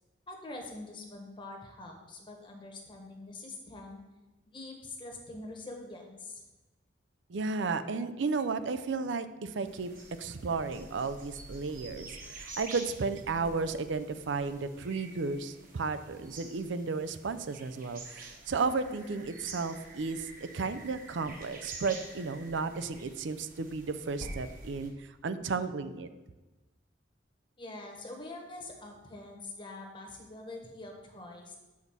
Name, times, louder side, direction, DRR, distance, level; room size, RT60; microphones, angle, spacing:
voice 1, 0.3-4.0 4.4-6.4 27.6-31.6, left 2 dB, 25° left, 1 dB, 1.1 m, -45 dB
voice 2, 7.3-9.9 10.2-26.1, right 4 dB, 70° right, 11 dB, 0.5 m, -33 dB
sound 1, 9.6-24.9, right 2 dB, 45° right, 1.3 m, -48 dB
7.2 x 4.1 x 6.0 m, 1.1 s
head